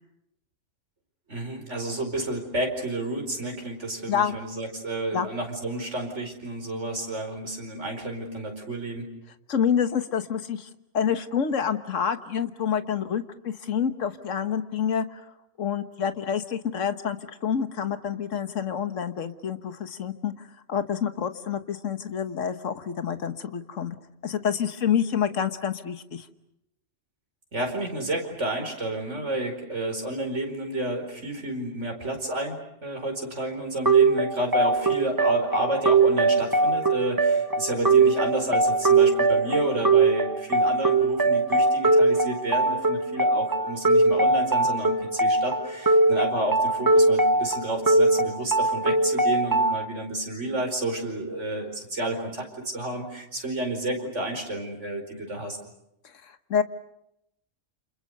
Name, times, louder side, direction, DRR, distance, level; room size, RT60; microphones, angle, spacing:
voice 1, 1.3-9.1 27.5-55.6, right 1 dB, 65° right, 3 dB, 5.2 m, -31 dB
voice 2, 9.5-10.7 10.9-15.2 15.6-24.0 24.2-26.3 56.2-56.6, left 8 dB, 75° left, 10 dB, 1.6 m, -28 dB
sound 1, 33.9-49.8, right 3 dB, 15° right, 1.3 m, -21 dB
29.0 x 28.0 x 6.6 m, 0.80 s
omnidirectional pair, 1.3 m